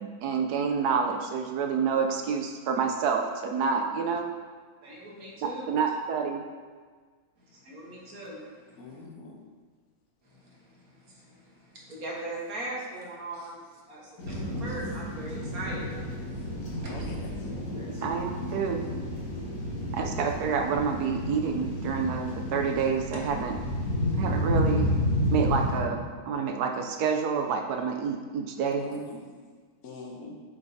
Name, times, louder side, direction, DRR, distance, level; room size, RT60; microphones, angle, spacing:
voice 1, 0.0-4.3 5.7-6.4 18.0-18.9 19.9-23.5 24.1-24.9 25.3-26.0 26.3-28.8, right 6 dB, 75° right, 3 dB, 0.9 m, -28 dB
voice 2, 4.8-5.9 7.4-9.1 10.2-15.9 16.7-17.1 17.7-18.0, right 1 dB, 55° right, -4 dB, 1.6 m, -41 dB
voice 3, 8.8-9.4 16.8-17.3 28.8-29.3 29.8-30.3, left 1 dB, 60° left, -1 dB, 1.2 m, -41 dB
sound 1, 14.2-25.8, equal, 85° left, 2.4 m, -31 dB
8.1 x 5.3 x 2.7 m, 1.5 s
omnidirectional pair, 2.0 m